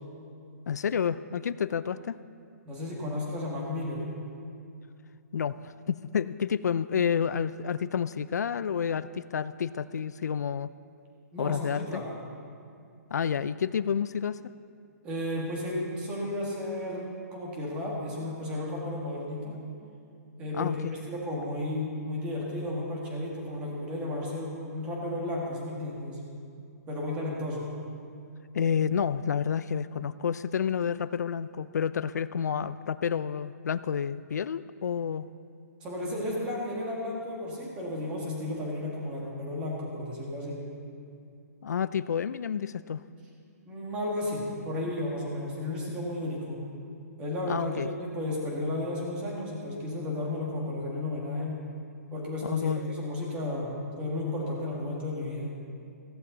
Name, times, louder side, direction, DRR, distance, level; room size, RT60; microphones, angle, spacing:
voice 1, 0.7-2.2 5.3-10.7 11.4-12.0 13.1-14.4 20.5-21.0 28.5-35.3 41.6-43.0 47.5-47.9 52.4-52.8, left 7 dB, 80° left, 15 dB, 0.4 m, -29 dB
voice 2, 2.7-4.1 11.3-12.1 15.0-17.0 17.3-19.5 20.4-20.8 21.1-26.2 26.9-27.7 35.8-40.6 43.6-46.6 47.2-51.6 52.1-55.5, left 1 dB, 10° right, -3 dB, 1.7 m, -33 dB
15.0 x 14.5 x 4.0 m, 2.5 s
hypercardioid pair, 175°, 9 cm